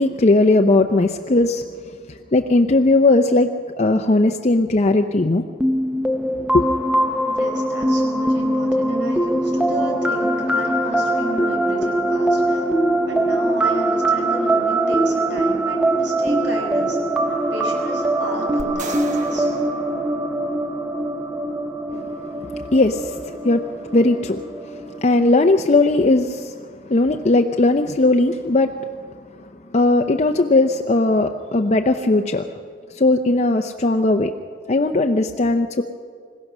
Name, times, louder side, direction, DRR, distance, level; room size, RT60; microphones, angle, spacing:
voice 1, 0.0-1.6 2.1-5.5 6.5-6.6 21.9-22.0 22.4-26.5 26.9-28.8 29.7-32.5 32.9-34.3 34.7-35.8, left 2 dB, 40° left, 5 dB, 0.6 m, -18 dB
sound 1, 5.6-25.1, right 1 dB, 5° right, 0.9 m, -22 dB
voice 2, 7.2-12.7 13.1-17.0 17.5-19.5, right 1 dB, 85° right, 1 dB, 5.0 m, -33 dB
sound 2, 18.6-21.0, right 3 dB, 40° right, 1.4 m, -36 dB
26.5 x 16.5 x 6.2 m, 2.1 s
head